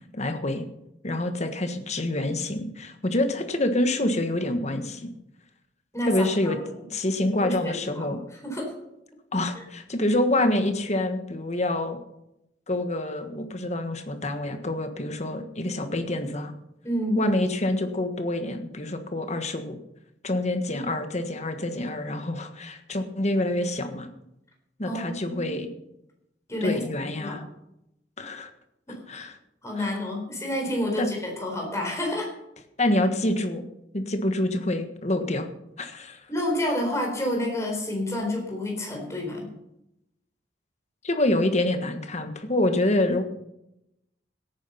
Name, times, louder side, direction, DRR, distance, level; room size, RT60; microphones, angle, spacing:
voice 1, 0.1-0.6 1.0-5.1 6.1-6.6 6.9-8.2 9.3-12.0 12.7-16.5 17.1-19.8 20.2-24.1 24.8-25.7 26.6-27.5 28.2-28.5 29.1-29.4 29.7-29.9 31.0-31.1 32.8-33.6 33.9-35.5 35.8-36.2 41.0-43.2, left 1 dB, 40° left, 7 dB, 1.4 m, -26 dB
voice 2, 5.9-6.5 7.4-8.1 8.4-8.7 9.6-9.7 16.8-17.2 24.9-25.6 26.5-27.4 28.9-29.0 29.6-32.3 36.3-39.5, left 1 dB, 15° left, 1 dB, 4.2 m, -29 dB
16.0 x 9.5 x 5.6 m, 0.85 s
head